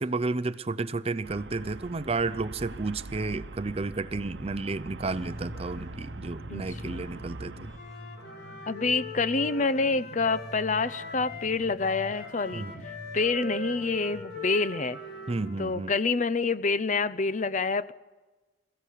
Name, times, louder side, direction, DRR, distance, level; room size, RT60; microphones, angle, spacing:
voice 1, 0.0-7.7 12.5-12.7 15.3-15.9, right 3 dB, 35° right, 0.6 m, -32 dB
Traffic noise roadway noise, 1.2-7.8, right 2 dB, 75° right, 0.9 m, -42 dB
sound 1, 4.9-15.4, left 1 dB, 85° left, 7.4 m, -46 dB
voice 2, 6.5-7.0 8.7-12.7 13.1-15.0 15.6-17.9, left 4 dB, 40° left, 0.6 m, -27 dB
Wind instrument woodwind instrument, 7.7-11.5 11.8-15.9, left 2 dB, 60° left, 2.5 m, -41 dB
22.5 x 15.0 x 8.3 m
head